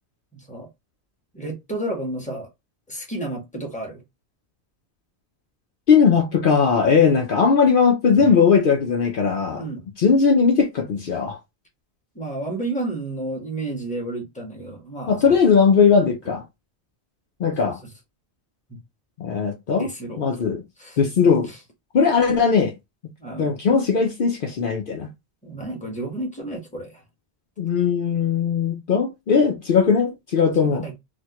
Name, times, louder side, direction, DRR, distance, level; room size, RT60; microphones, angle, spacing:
voice 1, 0.3-0.7 1.3-2.5 2.9-4.0 8.2-8.3 9.6-9.9 12.1-15.3 17.4-17.9 18.7-18.8 19.8-20.2 20.8-21.0 21.2-21.6 23.2-23.6 25.4-27.0 30.6-31.0, right 2 dB, 5° left, 1.1 m, -32 dB
voice 2, 5.9-9.6 10.0-11.4 15.1-16.4 17.4-17.8 19.2-19.9 20.2-20.6 21.0-21.5 21.9-22.7 23.4-25.1 27.6-30.9, left 6 dB, 60° left, 0.8 m, -19 dB
4.1 x 2.1 x 2.9 m
omnidirectional pair, 1.1 m